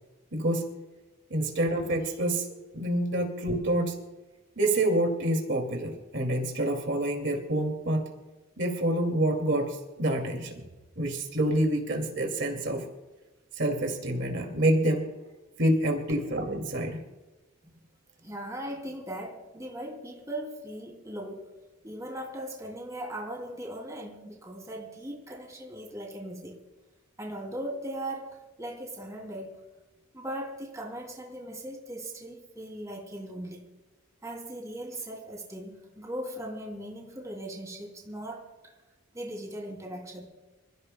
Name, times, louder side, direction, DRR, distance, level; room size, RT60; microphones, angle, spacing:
voice 1, 0.3-0.6 1.3-4.0 4.6-8.0 8.6-10.6 11.0-12.8 13.5-15.1 15.6-17.0, right 1 dB, 60° right, 2.3 m, -27 dB
voice 2, 18.2-21.5 21.8-26.6 27.2-29.6 30.1-33.7 34.2-38.7 39.1-40.3, right 1 dB, 15° right, 2.7 m, -39 dB
27.0 x 15.0 x 2.2 m
head